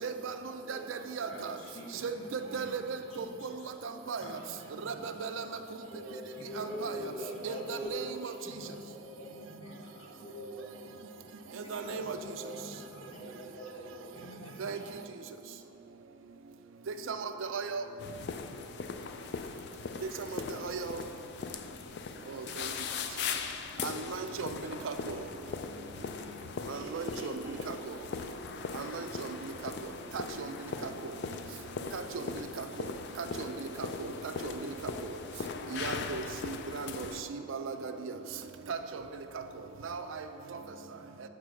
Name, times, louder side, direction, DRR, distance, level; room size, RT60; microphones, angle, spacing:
voice 1, 0.0-0.3 0.7-1.5 2.0-3.3 3.8-4.2 4.9-5.4 6.6-7.0 7.4-8.1 11.6-12.2 14.6-14.8 17.1-17.8 20.0-21.0 22.3-22.7 23.8-24.5 24.8-25.1 26.7-27.8 28.7-29.3 30.1-30.5 31.9-32.2 33.2-33.5 33.8-33.9 34.4-34.5 35.7-37.9 38.7-38.8 39.8-40.2, right 5 dB, 65° right, 8 dB, 0.4 m, -37 dB
voice 2, 1.3-2.8 3.1-3.7 4.2-5.1 6.3-7.6 8.4-8.9 9.2-10.2 11.7-13.4 14.1-14.9 27.4-27.5, left 1 dB, 80° left, -3 dB, 1.2 m, -50 dB
voice 3, 5.9-8.2 8.7-9.8 10.2-10.7 11.4-12.5 13.0-14.1 26.7-27.5, equal, 25° left, -2 dB, 0.8 m, -43 dB
sound 1, 18.0-37.2, left 5 dB, 50° left, 0.3 m, -40 dB
5.9 x 4.7 x 6.2 m, 2.9 s
head